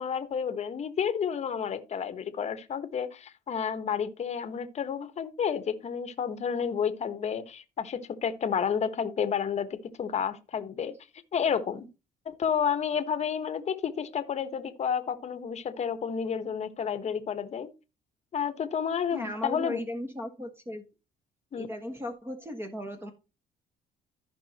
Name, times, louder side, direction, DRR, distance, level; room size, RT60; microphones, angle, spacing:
voice 1, 0.0-10.9 11.3-11.9 12.2-17.7 18.3-19.8 21.5-21.7, left 7 dB, 40° left, 1.2 m, -30 dB
voice 2, 19.1-20.9 21.6-23.1, left 1 dB, 15° right, 1.4 m, -36 dB
14.5 x 5.4 x 2.9 m
cardioid pair, 110°, 17 cm